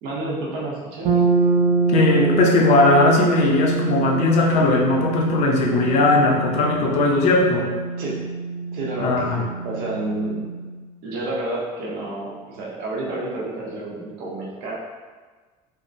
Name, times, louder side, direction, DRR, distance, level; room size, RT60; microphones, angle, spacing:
voice 1, 0.0-1.1 8.0-8.2 8.7-10.5 11.0-14.7, right 2 dB, 90° right, -4 dB, 0.8 m, -30 dB
sound 1, 1.0-10.8, right 4 dB, 75° right, 0.5 m, -24 dB
voice 2, 1.9-7.7 9.0-9.4, left 3 dB, 50° left, 0 dB, 0.4 m, -18 dB
3.6 x 2.0 x 2.5 m, 1.4 s
cardioid pair, 175°, 15 cm